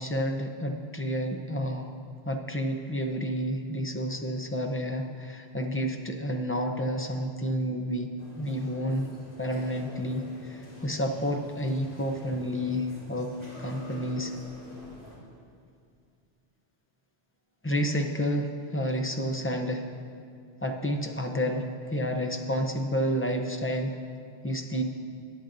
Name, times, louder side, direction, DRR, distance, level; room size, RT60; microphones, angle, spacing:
voice 1, 0.0-1.9 2.2-9.1 9.4-13.3 13.6-14.3 17.6-19.8 20.6-23.9 24.4-24.8, equal, 15° left, 3 dB, 0.5 m, -30 dB
sound 1, 8.2-15.2, equal, 55° left, 2.7 m, -48 dB
16.5 x 10.0 x 2.6 m, 2.2 s
omnidirectional pair, 1.1 m